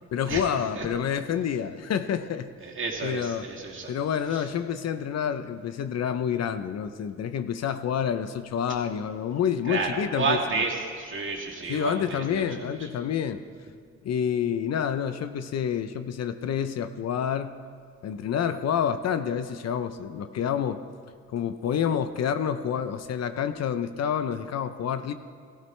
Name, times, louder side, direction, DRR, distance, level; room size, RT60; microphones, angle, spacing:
voice 1, 0.1-2.5 3.0-3.5 3.9-10.4 11.7-13.4 14.0-17.5 18.0-20.8 21.3-25.1, left 8 dB, 60° left, 11 dB, 0.7 m, -28 dB
voice 2, 2.6-3.9 4.3-4.4 9.7-12.4 12.8-12.9, right 4 dB, 40° right, -2 dB, 2.4 m, -30 dB
17.0 x 14.5 x 3.3 m, 2.2 s
cardioid pair, 90°, 30 cm